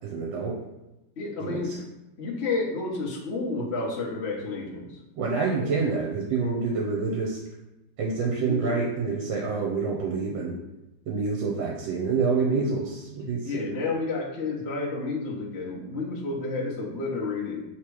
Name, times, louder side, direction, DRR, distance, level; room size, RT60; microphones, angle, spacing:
voice 1, 0.0-0.6 1.4-1.8 5.1-7.4 8.0-10.6 11.1-13.6, right 4 dB, 75° right, -2 dB, 1.4 m, -27 dB
voice 2, 1.2-1.7 2.2-5.0 5.6-5.7 8.4-8.8 13.4-17.6, left 3 dB, 45° left, -3 dB, 1.0 m, -30 dB
3.5 x 3.2 x 4.7 m, 0.95 s
omnidirectional pair, 2.1 m